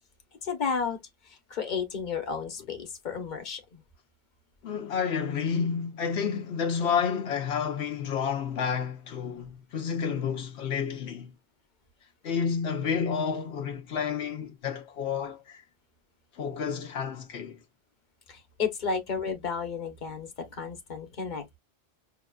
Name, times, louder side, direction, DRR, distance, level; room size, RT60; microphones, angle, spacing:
voice 1, 0.4-1.0 1.2-3.8 18.3-21.6, left 5 dB, 50° left, 1.1 m, -32 dB
voice 2, 4.6-11.3 12.2-15.6 16.3-17.6, left 6 dB, 85° left, 1.0 m, -30 dB
5.6 x 2.4 x 2.3 m
omnidirectional pair, 1.1 m